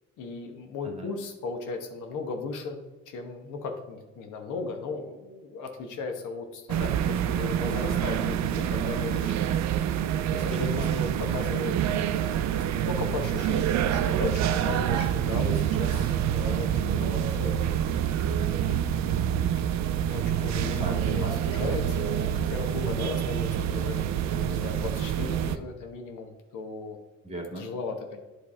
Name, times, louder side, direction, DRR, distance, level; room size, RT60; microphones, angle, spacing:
voice 1, 0.2-9.4 10.3-14.3 14.6-17.8 19.9-24.0 24.3-27.0 27.6-28.2, left 4 dB, 85° left, 4 dB, 1.0 m, -36 dB
sound 1, 6.7-25.6, right 10 dB, 65° right, 0.5 m, -27 dB
voice 2, 10.5-11.0 18.7-19.4 20.7-21.8 27.2-27.7, right 1 dB, 20° right, 1 dB, 1.8 m, -38 dB
8.8 x 3.4 x 4.2 m, 1.2 s
cardioid pair, 90°, 30 cm